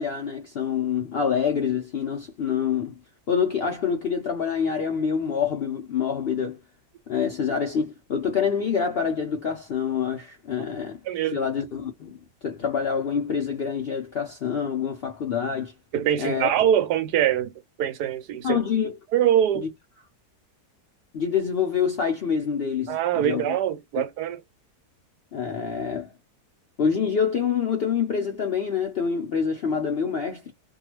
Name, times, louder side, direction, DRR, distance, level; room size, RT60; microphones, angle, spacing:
voice 1, 0.0-2.9 3.3-6.6 7.1-11.0 11.3-15.7 16.2-16.5 18.4-19.0 19.5-19.7 21.1-23.5 23.9-24.0 25.3-26.1 26.8-30.5, left 7 dB, 65° left, 0.6 m, -26 dB
voice 2, 11.0-11.4 15.9-17.5 17.8-18.6 19.1-19.7 22.9-24.4, right 10 dB, 80° right, 1.2 m, -23 dB
2.7 x 2.3 x 3.0 m
omnidirectional pair, 1.7 m